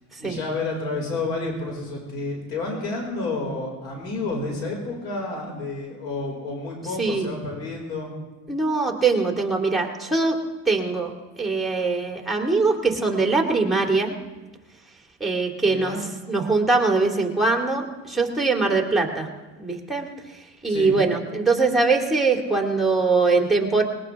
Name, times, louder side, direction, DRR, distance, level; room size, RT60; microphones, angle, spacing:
voice 1, 0.2-8.1 15.6-16.0 20.7-20.9, left 3 dB, 85° left, 0 dB, 5.4 m, -30 dB
voice 2, 7.0-7.3 8.5-10.4 10.7-14.2 15.2-16.0 16.3-19.3 19.6-20.1 20.6-23.8, right 3 dB, ahead, 1 dB, 2.2 m, -22 dB
20.0 x 19.0 x 3.6 m, 1.2 s
cardioid pair, 115°, 40 cm